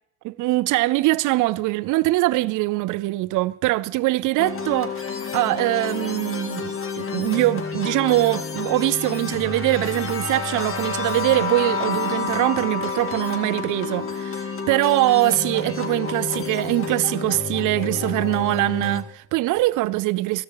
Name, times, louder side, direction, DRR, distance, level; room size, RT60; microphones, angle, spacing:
voice 1, 0.2-20.4, right 18 dB, 85° right, 0.5 m, -22 dB
sound 1, 4.4-19.0, left 5 dB, 45° left, 2.0 m, -29 dB
14.5 x 13.0 x 4.7 m
cardioid pair, 90°, 30 cm